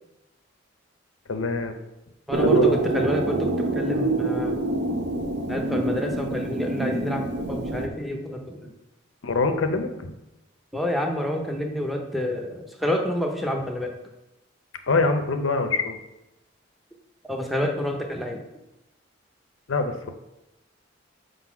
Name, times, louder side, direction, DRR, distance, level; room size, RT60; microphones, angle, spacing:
voice 1, 1.3-1.8 2.4-2.8 9.2-10.1 14.9-16.0 19.7-20.1, left 3 dB, 85° left, 8 dB, 0.7 m, -24 dB
voice 2, 2.3-4.6 5.5-8.7 10.7-13.9 17.3-18.4, left 1 dB, ahead, 1 dB, 0.6 m, -28 dB
sound 1, 2.3-7.9, right 3 dB, 55° right, 0.6 m, -25 dB
5.2 x 4.0 x 5.8 m, 0.93 s
head